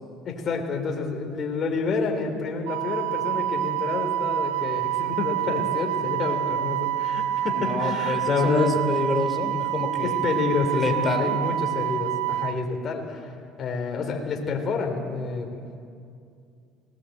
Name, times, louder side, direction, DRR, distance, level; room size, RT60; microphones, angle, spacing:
voice 1, 0.3-8.8 10.0-15.7, left 4 dB, 45° left, 3 dB, 3.7 m, -28 dB
Wind instrument woodwind instrument, 2.7-12.6, right 13 dB, 80° right, 0.6 m, -27 dB
voice 2, 7.5-10.2 10.7-11.4, left 3 dB, 30° left, 6 dB, 3.0 m, -28 dB
19.0 x 19.0 x 8.0 m, 2.4 s
supercardioid pair, 95°, 0 cm